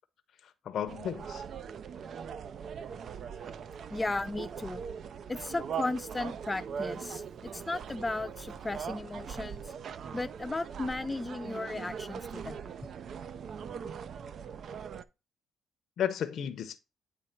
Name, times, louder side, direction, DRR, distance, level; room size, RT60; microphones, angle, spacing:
voice 1, 0.6-1.4 16.0-16.8, left 9 dB, 65° left, 0.6 m, -33 dB
sound 1, 0.9-15.0, right 7 dB, 60° right, 0.4 m, -41 dB
voice 2, 3.9-4.8 5.3-9.7 10.1-12.6, left 2 dB, 15° left, 0.5 m, -35 dB
8.9 x 3.2 x 4.3 m
cardioid pair, 90°, 0 cm